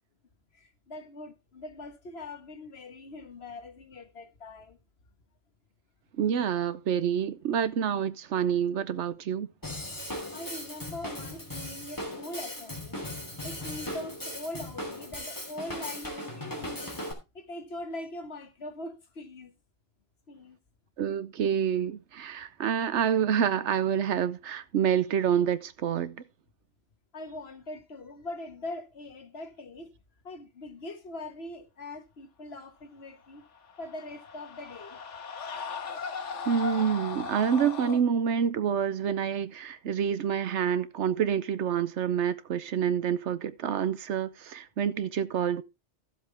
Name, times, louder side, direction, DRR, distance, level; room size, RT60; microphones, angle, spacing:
voice 1, 0.5-4.8 10.3-13.1 13.4-16.8 17.3-19.5 20.3-20.6 27.1-29.9 30.2-33.4 33.8-35.0, left 2 dB, 60° left, 1.6 m, -42 dB
voice 2, 6.2-9.5 21.0-26.2 36.5-45.6, right 8 dB, 75° right, 1.0 m, -27 dB
Drum kit / Drum, 9.6-17.1, left 1 dB, 15° left, 2.9 m, -38 dB
sound 1, 33.5-38.0, left 5 dB, 85° left, 1.6 m, -38 dB
13.5 x 7.6 x 3.4 m
omnidirectional pair, 1.2 m